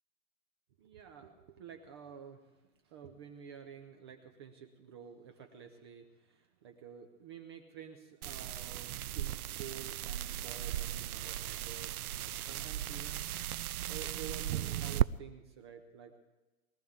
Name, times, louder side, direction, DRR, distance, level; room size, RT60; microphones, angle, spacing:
voice 1, 0.8-2.5 2.8-13.3 13.6-16.2, right 7 dB, 20° right, 5 dB, 0.5 m, -50 dB
sound 1, 8.2-15.1, right 12 dB, 80° right, 0.5 m, -36 dB
20.5 x 14.0 x 3.6 m, 1.1 s
hypercardioid pair, 145°, 43 cm